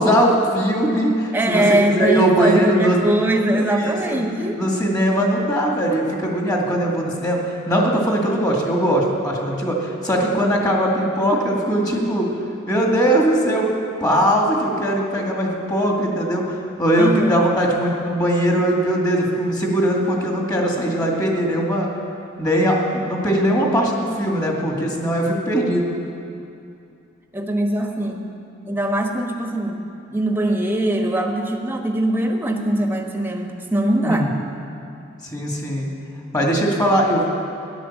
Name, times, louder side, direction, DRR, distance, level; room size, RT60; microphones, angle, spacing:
voice 1, 0.0-3.0 3.5-7.4 7.7-12.3 12.7-13.7 14.0-21.9 22.4-25.9 34.0-34.3 35.3-35.9 36.3-37.3, equal, 20° left, -1 dB, 2.2 m, -20 dB
voice 2, 1.3-4.6 17.0-17.4 27.3-28.3 28.6-29.8 30.1-34.3, right 1 dB, 10° right, 2 dB, 1.2 m, -21 dB
13.5 x 11.0 x 7.3 m, 2.6 s
head